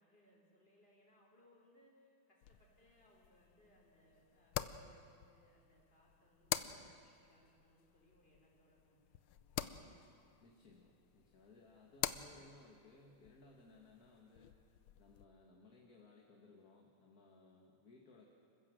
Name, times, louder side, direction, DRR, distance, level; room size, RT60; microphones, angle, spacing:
voice 1, 0.0-9.9, equal, 25° left, -2 dB, 4.5 m, -70 dB
sound 1, 2.4-15.3, left 12 dB, 85° left, 1.6 m, -48 dB
voice 2, 6.6-6.9 10.4-14.5 15.0-18.3, left 3 dB, 45° left, 0 dB, 2.1 m, -62 dB
27.5 x 15.0 x 7.7 m, 2.4 s
omnidirectional pair, 2.3 m